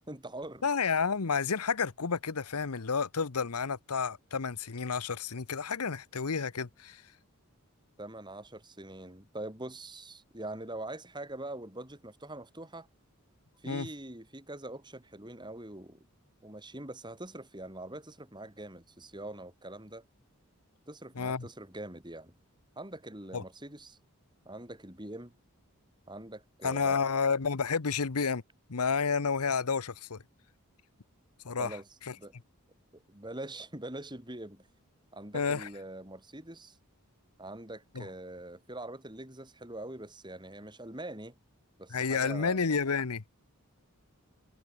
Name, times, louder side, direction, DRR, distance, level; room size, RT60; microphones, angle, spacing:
voice 1, 0.1-0.7 8.0-12.9 13.6-16.1 16.4-20.1 20.9-22.3 22.8-24.0 24.5-25.3 26.1-27.0 31.6-31.9 32.2-32.3 33.1-34.6 35.1-36.8 37.4-41.3 41.8-42.6, right 1 dB, 20° right, 4.3 m, -43 dB
voice 2, 0.6-7.0 13.7-13.9 21.2-21.4 23.3-23.4 26.6-28.4 28.7-30.2 31.4-31.8 35.3-35.7 38.0-38.1 41.9-43.2, left 5 dB, 85° left, 0.9 m, -30 dB
head